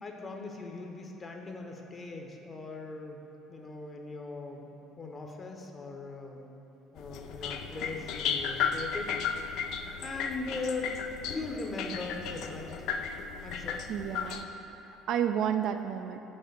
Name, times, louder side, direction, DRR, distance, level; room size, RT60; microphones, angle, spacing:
voice 1, 0.0-3.2 3.5-4.7 5.0-6.5 6.9-9.6 10.0-11.0 11.3-12.8 13.4-13.8, left 3 dB, 30° left, 2 dB, 1.0 m, -39 dB
sound 1, 7.0-14.4, left 7 dB, 55° left, 0.4 m, -35 dB
voice 2, 13.9-14.5 14.8-16.2, right 9 dB, 50° right, 7 dB, 0.3 m, -31 dB
5.6 x 5.5 x 6.7 m, 3.0 s
figure-of-eight pair, 55°, 0 cm